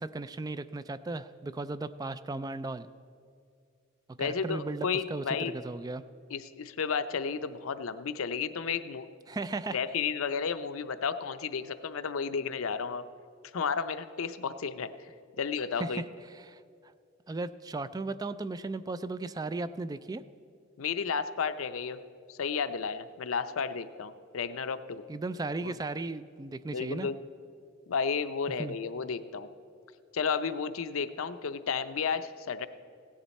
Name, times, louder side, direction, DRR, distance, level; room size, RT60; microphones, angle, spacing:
voice 1, 0.0-2.9 4.2-6.0 9.3-9.8 15.8-16.0 16.4-16.6 17.3-20.2 25.1-27.1 28.6-28.8, right 3 dB, 20° right, 13 dB, 0.3 m, -36 dB
voice 2, 4.2-5.5 6.3-9.1 9.7-13.0 13.5-14.9 15.4-16.0 20.8-22.0 22.3-25.0 25.6-25.7 26.7-27.2 27.9-29.5 30.1-32.7, left 6 dB, 90° left, 11 dB, 0.5 m, -32 dB
16.5 x 10.0 x 4.2 m, 2.4 s
head